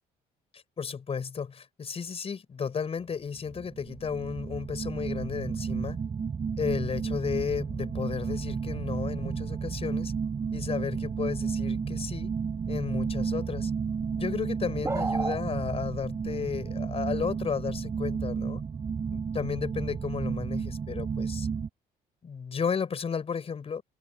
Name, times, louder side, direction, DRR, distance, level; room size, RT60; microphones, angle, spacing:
voice 1, 0.5-6.0 6.6-10.1 10.5-12.3 12.7-13.7 14.2-18.6 19.1-21.5 22.2-23.8, left 6 dB, 35° left, 5.1 m, -33 dB
sound 1, 3.5-21.7, right 6 dB, 35° right, 4.6 m, -32 dB
sound 2, 14.8-15.4, right 3 dB, 15° right, 1.6 m, -30 dB
cardioid pair, 110°, 17 cm